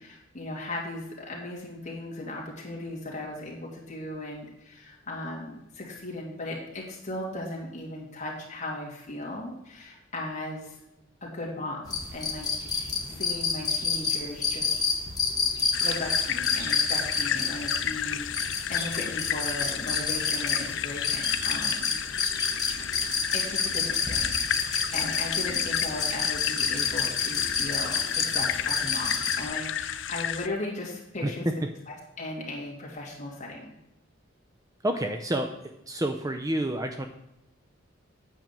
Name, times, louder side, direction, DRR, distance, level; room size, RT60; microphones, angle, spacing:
voice 1, 0.0-10.8 11.2-11.8 12.1-12.5 13.1-14.8 15.8-21.9 23.3-31.4 31.9-33.7, left 2 dB, 35° left, -2 dB, 2.6 m, -37 dB
sound 1, 11.9-29.4, left 5 dB, 20° left, 1.6 m, -29 dB
sound 2, 15.7-30.5, left 10 dB, 65° left, 0.5 m, -32 dB
voice 2, 34.8-37.1, right 1 dB, 15° right, 6 dB, 0.5 m, -29 dB
8.9 x 5.1 x 7.4 m, 0.87 s
head